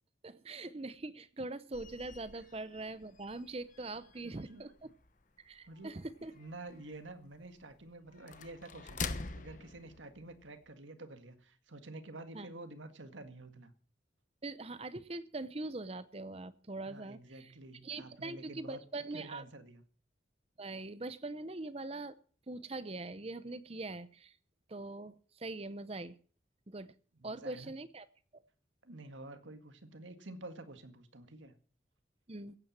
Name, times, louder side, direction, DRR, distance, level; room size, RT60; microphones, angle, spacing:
voice 1, 0.2-4.9 5.4-6.3 12.3-12.5 14.4-17.5 17.8-19.4 20.6-22.2 22.5-24.3 24.7-26.2 26.7-26.9 27.2-28.1 28.3-28.4 32.3-32.6, right 2 dB, 30° right, 15 dB, 0.7 m, -42 dB
sound 1, 1.7-10.7, left 4 dB, 40° left, 1.0 m, -47 dB
voice 2, 4.2-4.6 5.7-5.9 6.3-13.7 16.8-18.8 19.1-19.8 27.2-27.7 28.8-31.6, right 2 dB, 85° right, 9 dB, 1.9 m, -49 dB
16.0 x 9.1 x 7.5 m, 0.43 s
head